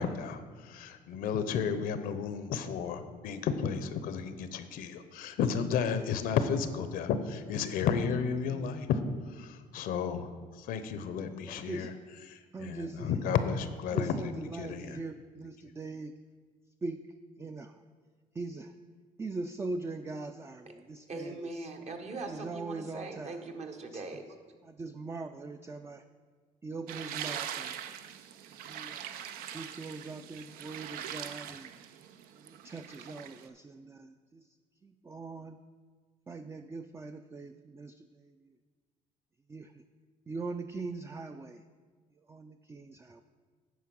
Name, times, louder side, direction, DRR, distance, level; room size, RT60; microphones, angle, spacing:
voice 1, 0.0-9.0 9.3-11.9 12.3-15.0, left 6 dB, 75° left, 11 dB, 0.7 m, -32 dB
voice 2, 8.4-8.8 11.2-11.9 12.5-13.1 13.9-16.1 16.8-17.0 17.4-17.8 18.4-18.7 19.2-21.7 22.3-23.5 23.9-24.1 24.6-26.0 26.6-27.7 28.6-29.1 29.5-31.7 32.4-34.4 34.8-35.6 36.3-38.3 39.5-39.8 40.3-41.6 42.3-43.2, right 3 dB, 15° right, 8 dB, 0.3 m, -41 dB
voice 3, 21.1-24.4, right 3 dB, 50° right, 5 dB, 1.1 m, -41 dB
sound 1, 26.9-33.5, right 10 dB, 80° right, 0.5 m, -42 dB
9.4 x 4.5 x 6.0 m, 1.5 s
cardioid pair, 95°, 15 cm